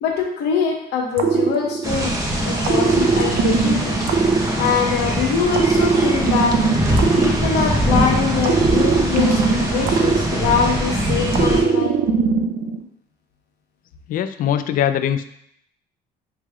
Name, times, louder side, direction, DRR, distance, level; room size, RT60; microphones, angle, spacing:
voice 1, 0.0-2.2 2.4-4.0 4.5-6.6 7.2-12.0, left 5 dB, 75° left, 0 dB, 1.1 m, -23 dB
sound 1, 1.2-2.2 2.6-5.1 5.5-8.0 8.4-10.9 11.3-12.8, right 5 dB, 60° right, 0.6 m, -20 dB
sound 2, 1.8-11.6, equal, 20° right, 1.0 m, -22 dB
voice 2, 14.1-15.3, left 10 dB, 55° left, 10 dB, 0.4 m, -21 dB
6.5 x 3.2 x 2.4 m, 0.72 s
cardioid pair, 110°, 17 cm